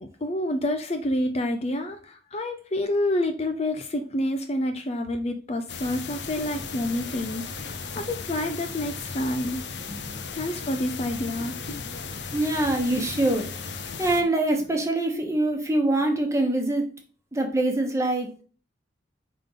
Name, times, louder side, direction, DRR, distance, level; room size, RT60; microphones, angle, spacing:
voice 1, 0.0-9.6 10.3-11.5, left 1 dB, 35° left, 7 dB, 0.5 m, -28 dB
sound 1, 5.7-14.2, left 5 dB, 70° left, 0.8 m, -36 dB
voice 2, 9.9-10.2 12.3-13.5 14.0-16.8 17.3-18.4, right 2 dB, 15° right, 3 dB, 1.2 m, -24 dB
5.2 x 3.7 x 5.5 m, 0.39 s
head